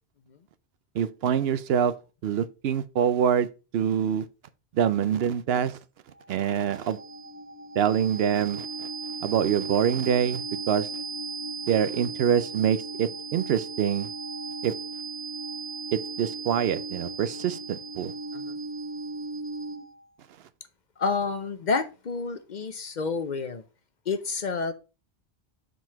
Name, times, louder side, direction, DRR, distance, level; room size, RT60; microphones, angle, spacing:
voice 1, 0.9-1.9 2.2-3.5 3.7-4.2 4.7-5.8 6.3-7.0 7.8-8.9 9.2-10.9 11.7-14.1 14.6-14.7 15.9-18.1, right 8 dB, 70° right, 0.8 m, -25 dB
sound 1, 6.2-20.0, right 3 dB, 15° right, 0.7 m, -36 dB
voice 2, 21.0-23.6 24.1-24.7, left 4 dB, 50° left, 0.7 m, -29 dB
7.2 x 3.9 x 4.5 m
omnidirectional pair, 1.1 m